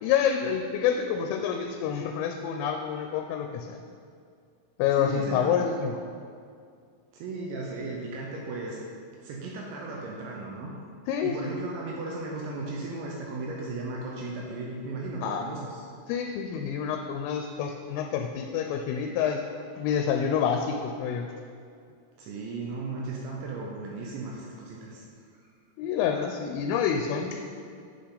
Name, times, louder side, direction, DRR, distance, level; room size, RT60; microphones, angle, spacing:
voice 1, 0.0-3.8 4.8-6.0 11.1-11.6 15.2-15.4 16.1-19.4 19.8-21.3 25.8-27.4, left 8 dB, 85° left, 4 dB, 3.0 m, -28 dB
voice 2, 5.0-5.6 7.1-8.8 9.2-10.7 11.2-15.8 22.2-25.1, right 3 dB, 80° right, -2 dB, 2.7 m, -36 dB
10.0 x 5.9 x 3.9 m, 2.3 s
omnidirectional pair, 6.0 m